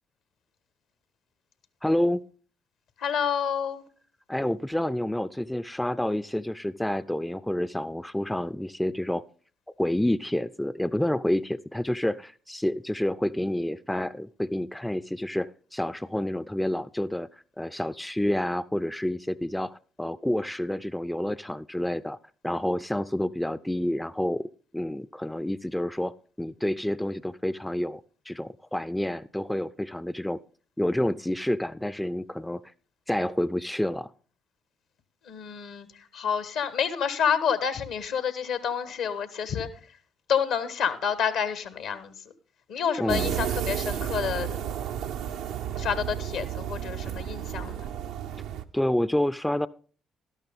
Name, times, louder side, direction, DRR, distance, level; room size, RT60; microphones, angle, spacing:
voice 1, 1.8-2.2 4.3-9.2 9.8-17.3 17.6-22.2 22.4-24.5 24.7-28.0 28.3-30.4 30.8-32.6 33.1-34.1 43.0-43.4 48.7-49.7, left 1 dB, 5° left, 15 dB, 0.5 m, -28 dB
voice 2, 3.0-3.8 35.3-35.9 36.1-39.7 40.3-42.2 42.7-44.6 45.8-47.9, left 7 dB, 65° left, 13 dB, 1.2 m, -28 dB
sound 1, 43.1-48.6, right 10 dB, 70° right, 0.6 m, -32 dB
12.5 x 12.0 x 3.6 m, 0.40 s
hypercardioid pair, 45°, 0 cm